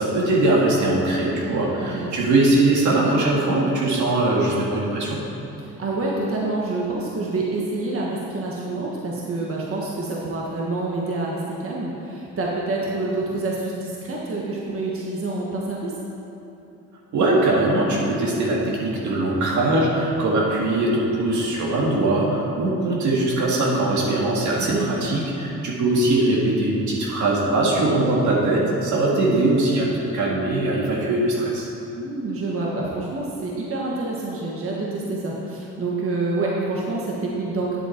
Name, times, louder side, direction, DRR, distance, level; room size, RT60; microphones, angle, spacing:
voice 1, 0.0-5.2 17.1-31.7, right 2 dB, 75° right, -3 dB, 2.1 m, -21 dB
voice 2, 1.4-2.1 5.6-15.9 24.6-24.9 32.0-37.8, right 2 dB, 45° right, -3 dB, 1.5 m, -27 dB
10.0 x 7.6 x 4.5 m, 2.8 s
cardioid pair, 90°, 30 cm